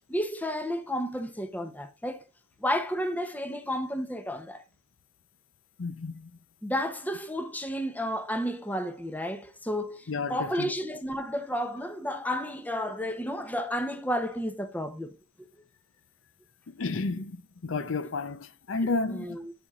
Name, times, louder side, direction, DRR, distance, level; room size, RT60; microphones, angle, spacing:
voice 1, 0.0-2.2 2.6-4.6 6.6-15.1 19.1-19.5, equal, 10° left, 0.7 m, -32 dB
voice 2, 5.8-6.1 10.1-10.7 16.8-17.4 17.6-19.3, left 3 dB, 75° left, 0.6 m, -31 dB
8.6 x 6.9 x 2.4 m
head